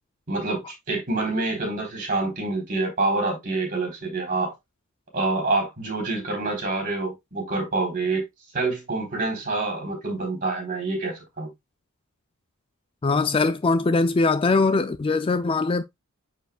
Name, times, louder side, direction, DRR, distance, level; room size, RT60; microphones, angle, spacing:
voice 1, 0.3-4.5 5.1-8.3 8.5-11.5, right 3 dB, 40° right, 3.9 m, -27 dB
voice 2, 13.0-15.8, left 3 dB, 25° left, 0.4 m, -21 dB
9.1 x 4.6 x 2.3 m
head